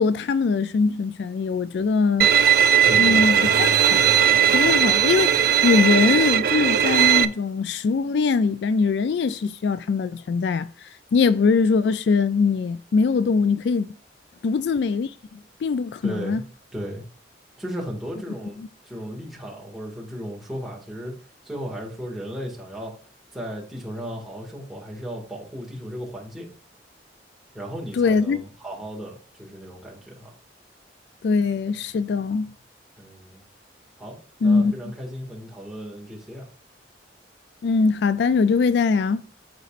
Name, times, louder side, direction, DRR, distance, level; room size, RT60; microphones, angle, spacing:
voice 1, 0.0-2.5 3.0-4.0 4.5-13.9 14.4-16.4 18.6-18.7 27.9-28.4 31.2-32.5 34.4-34.7 37.6-39.2, left 4 dB, 70° left, 0.3 m, -22 dB
Bowed string instrument, 2.2-7.3, right 8 dB, 55° right, 0.4 m, -18 dB
voice 2, 2.8-4.8 7.2-7.3 16.0-16.4 16.7-17.0 17.6-18.6 18.8-21.2 21.4-22.9 23.3-26.5 27.5-30.3 33.0-33.4 34.0-36.5, equal, ahead, 2.0 m, -35 dB
12.0 x 4.1 x 2.5 m
head